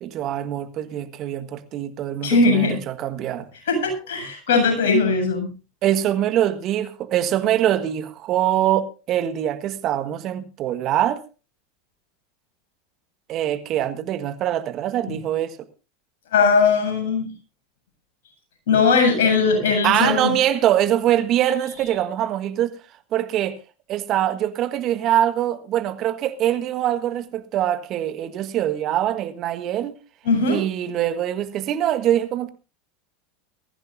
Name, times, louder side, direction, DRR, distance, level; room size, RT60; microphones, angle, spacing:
voice 1, 0.0-3.5 5.8-11.2 13.3-15.6 19.8-22.7 23.1-23.6 23.9-29.9 30.5-32.5, right 11 dB, 45° right, 1.6 m, -23 dB
voice 2, 2.2-2.8 3.7-5.5 16.3-17.3 18.7-20.4 30.2-30.6, left 4 dB, 70° left, 7.7 m, -19 dB
21.5 x 15.0 x 2.6 m
hypercardioid pair, 85°, 0 cm